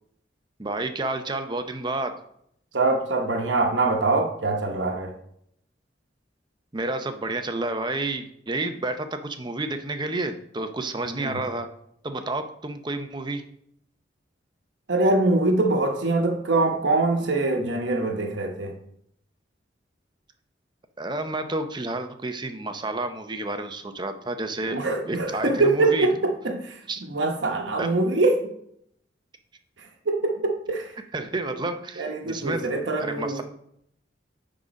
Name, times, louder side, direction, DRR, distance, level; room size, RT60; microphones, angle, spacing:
voice 1, 0.6-2.2 6.7-11.7 12.0-13.4 21.0-24.8 25.1-26.1 26.9-27.0 27.8-27.9 31.1-32.7 33.0-33.4, right 2 dB, 25° right, 0.6 m, -30 dB
voice 2, 2.7-5.2 11.0-11.4 14.9-18.8 24.7-28.5 29.8-31.0 32.0-33.4, right 2 dB, 80° right, 1.0 m, -24 dB
9.5 x 3.8 x 5.2 m
head